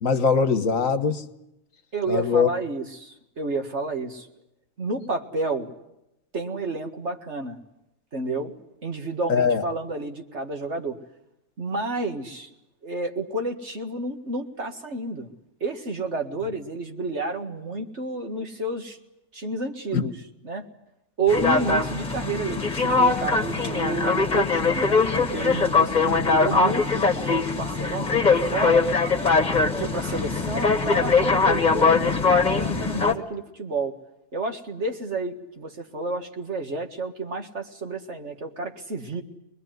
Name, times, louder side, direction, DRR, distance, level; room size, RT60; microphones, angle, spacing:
voice 1, 0.0-1.2 2.1-2.5 9.3-9.6 19.9-20.1, left 5 dB, 65° left, 1.5 m, -21 dB
voice 2, 1.9-4.3 4.8-5.7 6.3-7.6 8.1-8.5 8.8-11.0 11.6-12.5 12.8-15.3 15.6-19.0 19.3-20.1 20.4-20.7 21.2-28.9 29.6-34.0 34.3-39.2, right 3 dB, 50° right, 2.1 m, -30 dB
sound 1, 21.3-33.1, left 4 dB, 30° left, 1.9 m, -22 dB
24.5 x 21.0 x 9.2 m
omnidirectional pair, 1.5 m